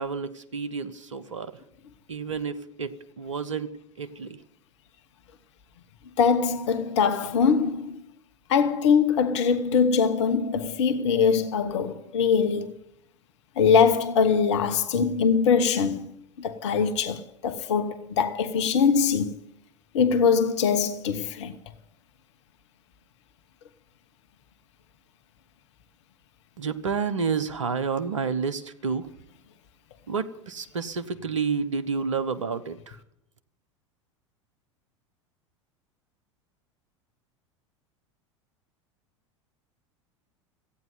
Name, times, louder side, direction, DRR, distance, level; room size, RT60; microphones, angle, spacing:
voice 1, 0.0-1.6 2.1-3.7 4.0-4.4 26.6-29.1 30.1-33.0, right 5 dB, 80° right, 1.1 m, -30 dB
voice 2, 6.2-8.0 8.5-12.7 13.6-19.3 19.9-21.5, left 6 dB, 65° left, 1.1 m, -22 dB
14.5 x 9.3 x 9.4 m
figure-of-eight pair, 80°, 16 cm